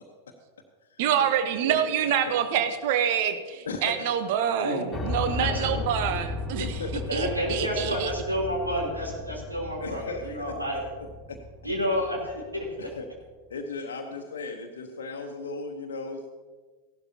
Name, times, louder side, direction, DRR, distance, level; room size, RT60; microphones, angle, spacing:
voice 1, 1.0-6.7 6.9-8.1, right 9 dB, 50° right, 9 dB, 0.9 m, -26 dB
voice 2, 3.6-4.1 5.4-5.5 6.6-7.0 9.8-10.8 11.3-11.4 12.8-13.1 13.5-16.3, left 4 dB, 65° left, 2 dB, 1.1 m, -36 dB
Piano, 4.9-12.9, left 2 dB, 15° left, 2.3 m, -35 dB
voice 3, 5.3-5.7 7.1-10.8 11.6-12.9, equal, 85° right, -3 dB, 3.5 m, -30 dB
16.0 x 12.0 x 2.9 m, 1.4 s
figure-of-eight pair, 90°, 0 cm